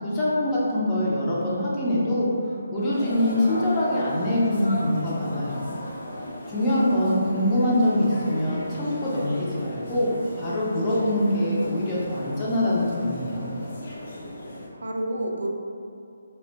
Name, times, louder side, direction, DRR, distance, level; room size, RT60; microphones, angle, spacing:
voice 1, 0.0-2.3 2.7-5.6 6.5-10.1 10.4-13.4, left 1 dB, 20° left, -8 dB, 0.6 m, -24 dB
sound 1, 2.9-14.7, left 1 dB, 55° left, 0.7 m, -37 dB
voice 2, 6.6-7.2 14.7-15.5, right 1 dB, 90° right, 1 dB, 0.4 m, -31 dB
2.3 x 2.2 x 3.9 m, 2.4 s
hypercardioid pair, 160°, 0 cm